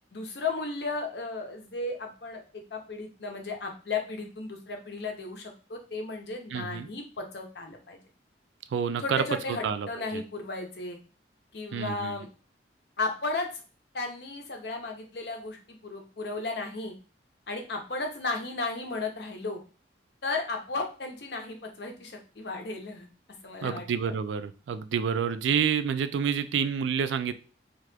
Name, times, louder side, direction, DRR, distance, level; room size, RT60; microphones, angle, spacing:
voice 1, 0.1-8.0 9.0-11.0 11.5-12.3 13.0-13.6 13.9-16.9 17.5-19.6 20.2-23.1 23.4-23.8, left 3 dB, 65° left, 3 dB, 0.7 m, -34 dB
voice 2, 6.5-6.9 8.7-10.2 11.7-12.2 23.6-27.3, right 7 dB, 85° right, 12 dB, 0.3 m, -28 dB
2.8 x 2.4 x 3.2 m, 0.36 s
head